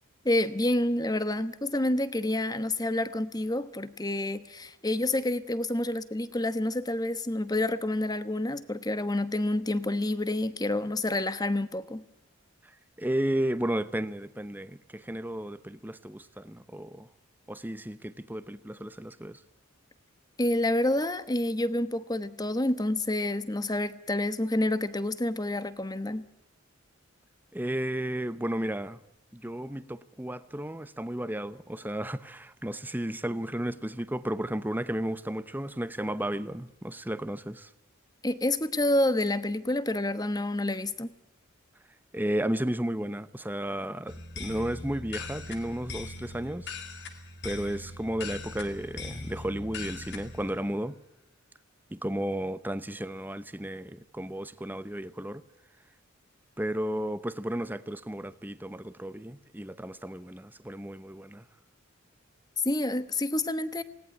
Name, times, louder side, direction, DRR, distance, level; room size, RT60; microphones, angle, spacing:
voice 1, 0.2-12.0 20.4-26.3 38.2-41.1 62.6-63.8, left 1 dB, 20° left, 1.1 m, -28 dB
voice 2, 13.0-17.1 17.5-19.4 27.5-29.0 29.3-37.7 42.1-46.7 47.4-51.0 51.9-55.4 56.6-61.5, right 1 dB, 10° right, 0.8 m, -33 dB
sound 1, 44.1-50.5, left 3 dB, 55° left, 2.7 m, -40 dB
20.0 x 18.0 x 9.2 m
head